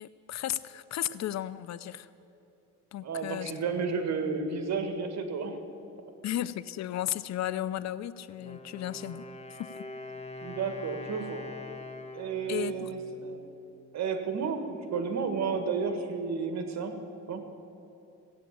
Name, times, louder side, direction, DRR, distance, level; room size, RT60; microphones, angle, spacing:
voice 1, 0.0-2.1 2.9-3.5 3.9-4.0 6.2-9.2 9.5-9.7 12.5-12.9, left 12 dB, 60° left, 16 dB, 0.6 m, -34 dB
voice 2, 3.0-5.6 10.4-11.5 12.1-13.4 13.9-16.9 17.3-17.4, right 5 dB, 60° right, 7 dB, 1.8 m, -32 dB
Wind instrument woodwind instrument, 8.3-14.1, left 1 dB, 20° left, 1.5 m, -44 dB
16.0 x 8.4 x 8.5 m, 2.8 s
cardioid pair, 90°, 30 cm